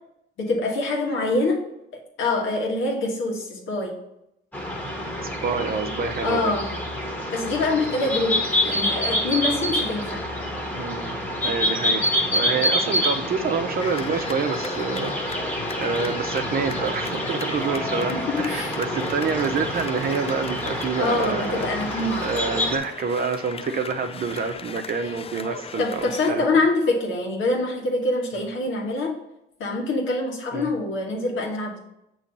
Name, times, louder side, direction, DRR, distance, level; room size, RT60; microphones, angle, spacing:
voice 1, 0.4-1.6 2.2-3.9 6.2-6.7 7.3-8.4 8.6-10.3 18.1-18.8 21.0-22.3 25.8-29.1 29.6-31.8, left 2 dB, 85° left, 0 dB, 1.5 m, -25 dB
sound 1, 4.5-22.8, equal, 10° left, 1.3 m, -27 dB
voice 2, 5.2-6.5 10.8-11.2 11.4-15.4 15.8-21.6 22.2-26.5 30.5-30.7, right 5 dB, 50° right, 6 dB, 0.7 m, -27 dB
sound 2, 13.8-26.3, left 6 dB, 30° left, 0.4 m, -38 dB
7.0 x 3.1 x 5.3 m, 0.84 s
cardioid pair, 90°, 20 cm